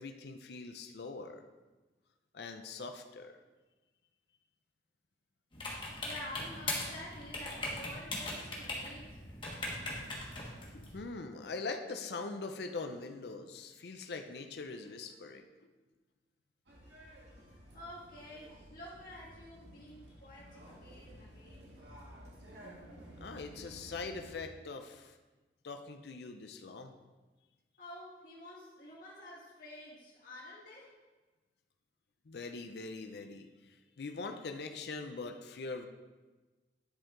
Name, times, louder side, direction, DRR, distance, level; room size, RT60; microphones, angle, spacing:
voice 1, 0.0-1.4 2.3-3.3 10.7-15.4 23.2-25.1 25.6-26.9 32.3-33.5 34.0-35.9, left 3 dB, 65° left, 6 dB, 0.5 m, -42 dB
sound 1, 5.5-11.0, left 2 dB, 30° left, 1.3 m, -40 dB
voice 2, 6.0-9.7 17.7-21.7 27.8-30.9, left 1 dB, 50° left, -7 dB, 2.1 m, -50 dB
sound 2, 16.7-24.3, equal, 75° right, 1.7 m, -53 dB
10.5 x 4.5 x 3.8 m, 1.2 s
head